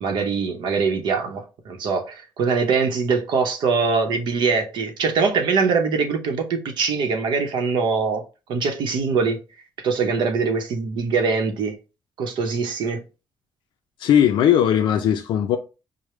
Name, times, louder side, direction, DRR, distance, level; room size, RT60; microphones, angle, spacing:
voice 1, 0.0-8.2 8.5-9.4 9.8-11.8 12.2-13.0, right 5 dB, 75° right, 0.8 m, -23 dB
voice 2, 14.0-15.6, left 9 dB, 85° left, 0.4 m, -18 dB
4.9 x 2.1 x 3.0 m
cardioid pair, 165°, 8 cm